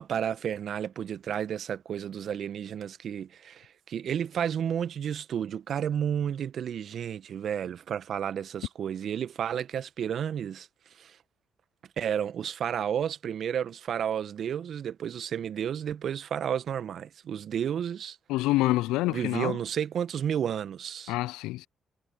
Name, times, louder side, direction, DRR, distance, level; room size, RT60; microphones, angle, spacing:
voice 1, 0.0-10.7 11.0-11.2 12.0-18.2 19.1-21.1, right 8 dB, 65° right, 1.2 m, -32 dB
voice 2, 18.3-19.6 21.1-21.7, left 18 dB, 80° left, 0.4 m, -27 dB
hypercardioid pair, 40°, 0 cm